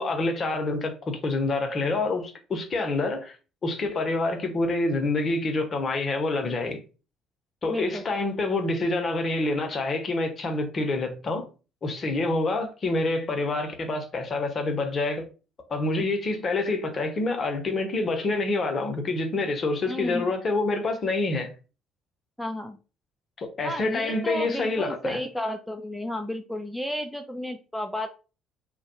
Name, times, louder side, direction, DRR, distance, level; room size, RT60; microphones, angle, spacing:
voice 1, 0.0-3.4 3.6-6.8 7.6-11.5 11.8-15.2 15.7-21.5 23.4-25.2, left 2 dB, 40° left, 0.7 m, -27 dB
voice 2, 7.7-8.0 19.9-20.3 22.4-22.8 23.6-28.1, left 1 dB, ahead, 0.3 m, -32 dB
2.2 x 2.2 x 2.8 m
figure-of-eight pair, 50°, 0 cm